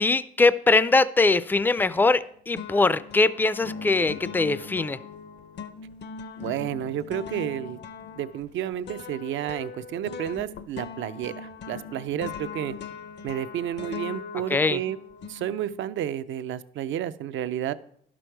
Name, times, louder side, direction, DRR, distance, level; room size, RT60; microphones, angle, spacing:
voice 1, 0.0-5.0 14.5-14.8, left 3 dB, 10° left, 17 dB, 0.3 m, -22 dB
sound 1, 1.8-2.2 2.6-16.0, left 6 dB, 60° left, 0.6 m, -40 dB
voice 2, 6.4-7.8 8.2-12.8 13.2-15.0 15.3-17.7, right 10 dB, 75° right, 13 dB, 0.5 m, -31 dB
11.0 x 6.2 x 4.5 m, 0.66 s
cardioid pair, 90°, 20 cm